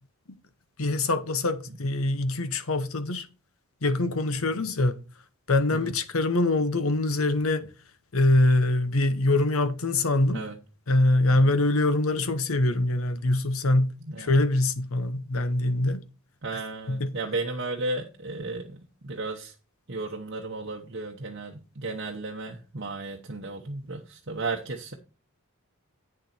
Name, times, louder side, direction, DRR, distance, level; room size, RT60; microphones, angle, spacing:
voice 1, 0.8-3.3 3.8-5.0 5.5-7.7 8.1-10.4 10.9-16.0 16.9-17.1, left 2 dB, 70° left, 0.9 m, -24 dB
voice 2, 14.0-14.4 16.4-19.5 19.9-24.9, right 2 dB, 50° right, 0.9 m, -34 dB
8.7 x 6.6 x 4.4 m
head